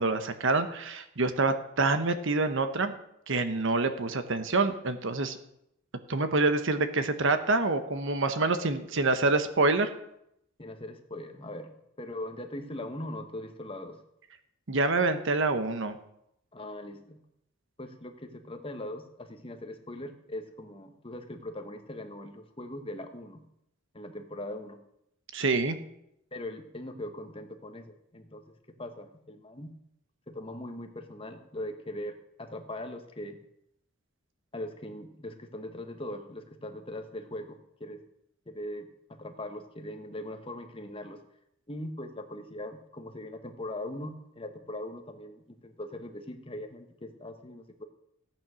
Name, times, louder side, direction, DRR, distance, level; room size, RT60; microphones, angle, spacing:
voice 1, 0.0-2.9 3.3-5.4 6.1-9.9 14.7-16.0 25.3-25.8, right 3 dB, 60° right, 9 dB, 1.2 m, -26 dB
voice 2, 10.6-11.7 12.0-14.0 16.5-17.2 17.8-23.4 23.9-24.8 26.3-28.4 28.7-29.7 30.3-33.4 34.5-38.0 38.5-41.2 41.7-47.8, left 1 dB, 25° left, 6 dB, 1.3 m, -40 dB
15.0 x 9.0 x 6.3 m, 0.79 s
head